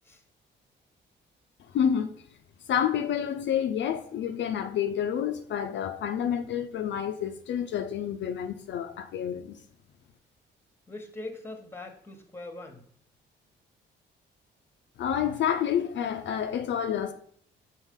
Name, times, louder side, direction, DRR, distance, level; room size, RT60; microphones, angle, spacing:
voice 1, 1.7-2.1 2.7-9.6 15.0-17.1, left 9 dB, 65° left, 0.5 m, -29 dB
voice 2, 10.9-12.8, left 2 dB, 10° left, 1.1 m, -41 dB
6.3 x 4.4 x 3.7 m
cardioid pair, 90°, 20 cm